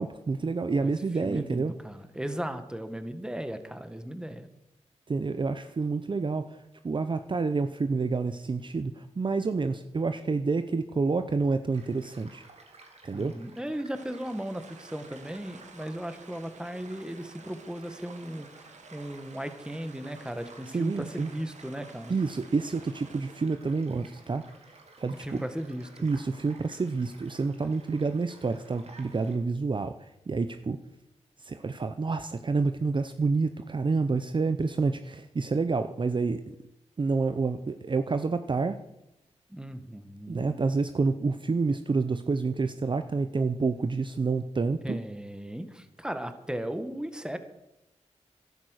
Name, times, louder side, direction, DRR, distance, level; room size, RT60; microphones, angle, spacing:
voice 1, 0.0-1.7 5.1-12.5 13.0-13.4 20.7-21.3 22.1-25.4 26.0-30.8 31.4-36.4 37.0-38.8 40.3-45.0, right 4 dB, 40° right, 10 dB, 0.7 m, -28 dB
voice 2, 1.2-4.5 13.1-22.1 25.2-26.1 39.5-40.5 44.8-47.4, right 1 dB, 5° right, 9 dB, 1.6 m, -36 dB
Child speech kid speaking / Stream / Car passing by, 11.7-29.3, right 3 dB, 60° right, 2.8 m, -54 dB
sound 1, 13.9-23.5, right 4 dB, 75° right, 1.6 m, -53 dB
13.0 x 11.5 x 6.5 m, 0.89 s
cardioid pair, 70°, 12 cm